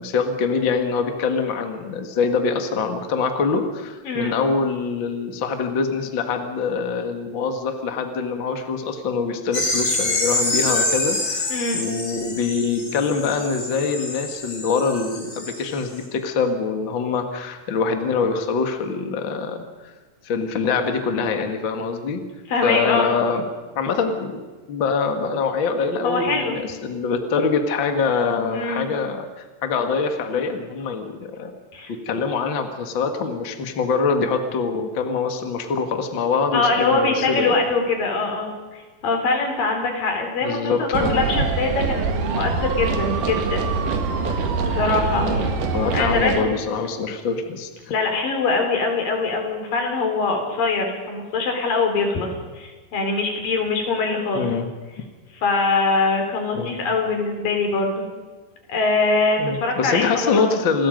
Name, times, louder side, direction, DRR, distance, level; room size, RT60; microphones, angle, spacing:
voice 1, 0.0-19.9 20.2-22.2 22.6-23.4 23.8-31.5 31.9-37.5 40.4-41.5 45.2-47.7 54.3-54.7 56.5-56.7 59.4-60.9, left 5 dB, 40° left, 5 dB, 2.3 m, -24 dB
voice 2, 4.1-4.4 11.5-11.8 22.5-23.2 26.0-26.6 28.5-28.9 31.7-31.9 36.5-43.7 44.6-45.3 45.9-46.5 47.9-54.5 55.4-58.0 58.7-60.5, left 3 dB, 85° left, 4 dB, 5.3 m, -23 dB
sound 1, 9.5-15.7, left 2 dB, 65° left, 7.0 m, -26 dB
sound 2, 40.9-46.4, right 5 dB, 70° right, 3.3 m, -24 dB
28.0 x 21.0 x 5.3 m, 1.3 s
omnidirectional pair, 3.8 m